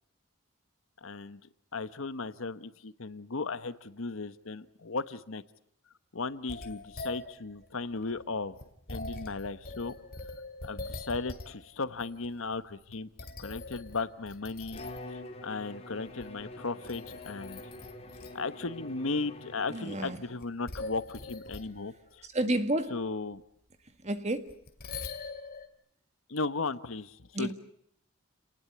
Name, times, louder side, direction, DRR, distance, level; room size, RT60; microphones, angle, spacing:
voice 1, 1.0-1.4 1.7-5.4 6.1-8.5 8.9-9.9 10.6-13.1 13.4-14.8 15.1-17.6 18.3-22.3 22.9-23.4 26.3-27.5, left 3 dB, 70° left, 1.1 m, -36 dB
sound 1, 6.5-11.7 12.0-12.5 12.9-15.2 16.1-16.5 16.8-18.4 18.9-19.0 20.4-21.8 24.5-25.7, left 3 dB, 45° left, 2.4 m, -43 dB
Bowed string instrument, 14.7-20.4, left 1 dB, 30° left, 2.9 m, -46 dB
voice 2, 19.7-20.2 22.3-23.0 24.0-24.5 27.3-27.5, right 1 dB, 35° right, 1.8 m, -30 dB
28.5 x 19.5 x 8.5 m
head